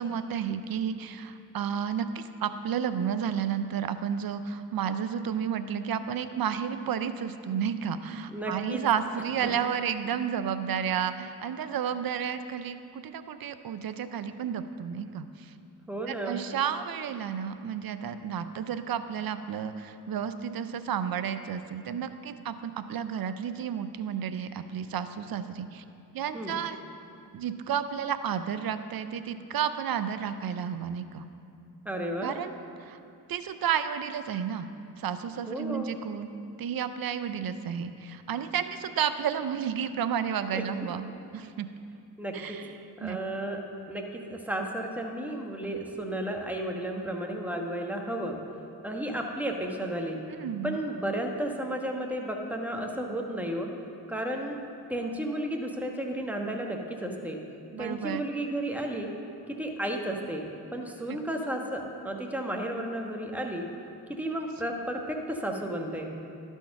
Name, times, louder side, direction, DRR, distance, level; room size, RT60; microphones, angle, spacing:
voice 1, 0.0-15.5 16.1-25.8 26.1-26.8 27.3-31.2 32.2-33.0 33.3-34.7 35.0-36.3 36.6-41.1 41.3-41.7 42.3-42.7 43.0-43.2 50.3-50.8 57.7-58.3, right 8 dB, 55° right, 11 dB, 0.6 m, -32 dB
voice 2, 8.3-8.8 9.4-9.5 15.9-16.4 26.3-26.6 31.8-32.3 35.5-35.9 40.5-40.9 42.2-42.6 43.0-43.6 43.9-48.4 48.8-50.2 50.6-53.7 54.1-54.6 54.9-57.4 57.8-59.1 59.5-63.7 64.1-66.2, right 1 dB, 5° right, 1 dB, 1.2 m, -33 dB
12.0 x 4.5 x 5.8 m, 2.6 s
cardioid pair, 60°, 43 cm